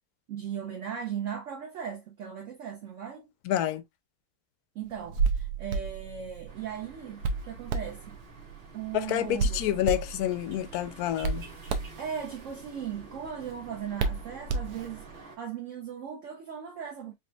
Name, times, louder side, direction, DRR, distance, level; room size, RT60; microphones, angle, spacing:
voice 1, 0.3-3.3 4.7-8.2 8.7-9.6 12.0-17.1, right 8 dB, 60° right, 1.0 m, -38 dB
voice 2, 3.4-3.8 8.9-11.5, left 12 dB, 75° left, 1.0 m, -28 dB
Hands, 4.9-15.2, right 4 dB, 85° right, 1.2 m, -33 dB
sound 1, 6.5-15.4, right 3 dB, 35° right, 1.3 m, -51 dB
4.3 x 2.9 x 2.2 m
omnidirectional pair, 1.7 m